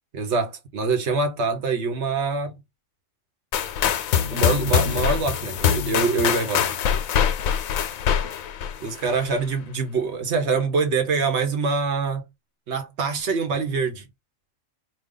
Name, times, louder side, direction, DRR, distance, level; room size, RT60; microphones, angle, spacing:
voice 1, 0.1-2.5 4.3-6.6 8.8-12.2 12.7-14.0, right 4 dB, 55° right, 1.4 m, -24 dB
sound 1, 3.5-9.4, left 8 dB, 85° left, 1.1 m, -24 dB
5.2 x 2.3 x 3.8 m
omnidirectional pair, 1.4 m